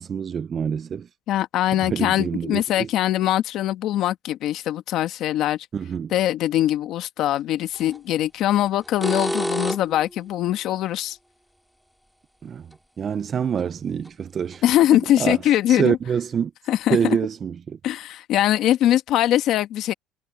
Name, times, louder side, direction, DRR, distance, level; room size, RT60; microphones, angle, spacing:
voice 1, 0.0-1.1 1.8-2.9 5.7-6.1 12.4-12.7 13.0-14.6 14.9-15.4 15.7-16.5 16.9-17.8, right 7 dB, 30° right, 0.4 m, -26 dB
voice 2, 1.3-5.6 6.1-11.2 14.6-16.0 16.7-17.2 17.8-19.9, left 13 dB, 55° left, 1.4 m, -22 dB
sound 1, 7.8-8.0 8.8-10.0 12.7-12.8 13.6-13.7 14.1-14.2 14.5-14.6, equal, ahead, 2.3 m, -27 dB
cardioid pair, 125°, 0 cm